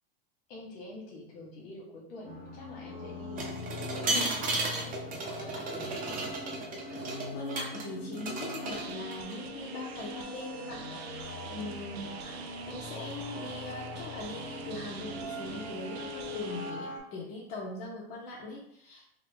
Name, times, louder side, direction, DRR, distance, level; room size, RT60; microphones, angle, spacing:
voice 1, 0.5-6.3, left 2 dB, 65° left, -2 dB, 1.5 m, -45 dB
sound 1, 2.2-17.0, left 2 dB, 25° left, 1.1 m, -42 dB
Pouring water from jug, 3.4-7.8 8.1-9.3, right 2 dB, 25° right, 0.8 m, -34 dB
voice 2, 6.9-12.4 12.7-19.2, left 2 dB, 50° left, -5 dB, 0.9 m, -41 dB
sound 2, 8.7-16.7, right 7 dB, 85° right, 0.5 m, -45 dB
3.7 x 2.2 x 3.4 m, 0.70 s
supercardioid pair, 120°, 31 cm